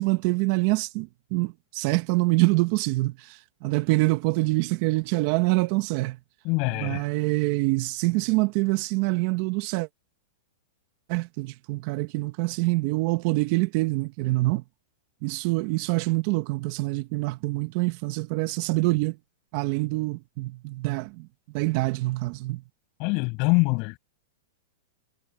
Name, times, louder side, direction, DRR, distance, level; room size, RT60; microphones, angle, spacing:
voice 1, 0.0-6.2 6.8-9.9 11.1-14.6 15.2-19.2 19.5-21.3 21.5-22.6, right 22 dB, 45° right, 1.2 m, -25 dB
voice 2, 6.4-7.0 23.0-24.0, left 30 dB, 45° left, 6.7 m, -24 dB
hypercardioid pair, 145°, 0 cm